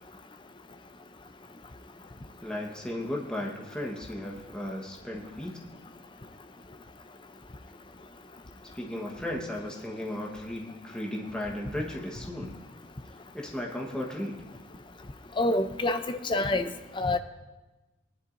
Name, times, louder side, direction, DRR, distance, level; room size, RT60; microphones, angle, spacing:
voice 1, 2.4-5.6 8.7-12.6 13.3-14.4, left 1 dB, 5° left, -2 dB, 1.2 m, -35 dB
voice 2, 15.4-16.7 17.0-17.2, left 2 dB, 25° left, 9 dB, 0.5 m, -26 dB
19.0 x 11.0 x 2.6 m, 1.1 s
head